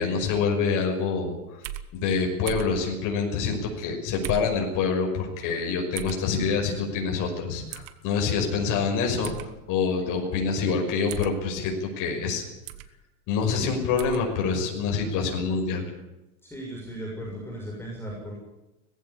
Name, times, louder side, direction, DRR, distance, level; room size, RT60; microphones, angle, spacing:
voice 1, 0.0-1.4 1.9-9.3 9.7-12.4 13.3-15.8, left 5 dB, 45° left, 1 dB, 5.8 m, -26 dB
sound 1, 1.6-1.9 2.5-2.8 4.2-4.5 6.0-6.2 7.7-7.9 9.2-9.5 11.1-11.4 12.7-12.9 14.0-14.2, right 12 dB, 55° right, 1.7 m, -36 dB
voice 2, 16.4-18.3, right 1 dB, 5° left, -3 dB, 6.5 m, -36 dB
19.5 x 15.5 x 9.9 m, 1.0 s
supercardioid pair, 135°, 43 cm